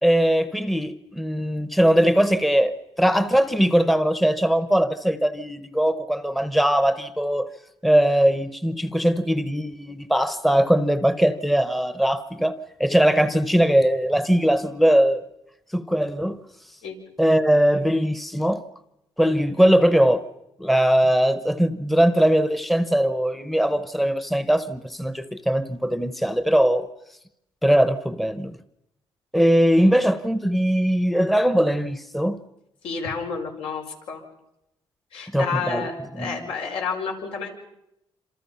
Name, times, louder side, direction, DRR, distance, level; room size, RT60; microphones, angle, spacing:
voice 1, 0.0-7.5 7.8-15.2 15.7-16.4 17.2-18.6 19.2-20.3 20.6-26.9 27.6-28.6 29.3-32.4 35.3-35.9 36.2-36.5, equal, ahead, 0.8 m, -20 dB
voice 2, 32.8-34.2 35.1-37.5, left 5 dB, 85° left, 5.7 m, -30 dB
27.5 x 27.5 x 5.7 m
cardioid pair, 155°, 9 cm